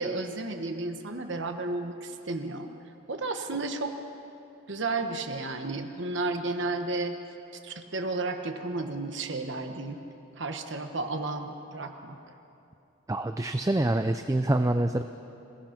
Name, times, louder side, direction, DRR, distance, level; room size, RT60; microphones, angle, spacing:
voice 1, 0.0-2.7 3.1-4.0 4.7-7.2 7.5-10.0 10.3-12.2, right 3 dB, 60° right, 5 dB, 1.2 m, -32 dB
voice 2, 13.1-15.0, right 1 dB, 15° right, 7 dB, 0.4 m, -26 dB
27.0 x 17.0 x 5.9 m, 2.8 s
head